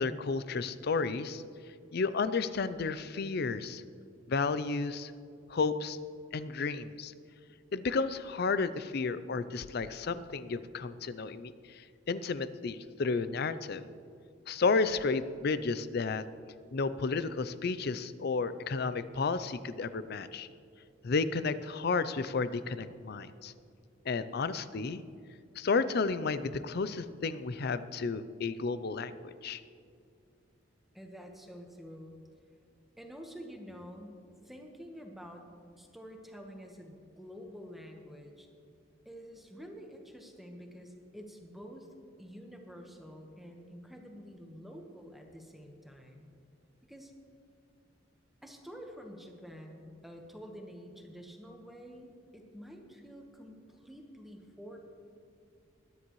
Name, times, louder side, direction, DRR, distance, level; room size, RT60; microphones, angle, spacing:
voice 1, 0.0-1.4 1.9-3.8 4.3-5.1 5.5-6.0 6.3-7.1 7.7-13.8 14.5-16.2 16.7-20.5 21.0-23.5 24.1-25.0 25.6-29.6, left 4 dB, 55° left, 13 dB, 0.5 m, -32 dB
voice 2, 30.9-32.2 33.0-35.4 35.8-38.5 39.0-41.9 42.2-46.3 46.9-47.1 48.4-54.8, equal, ahead, 2 dB, 1.2 m, -48 dB
21.0 x 10.0 x 3.1 m, 2.3 s
head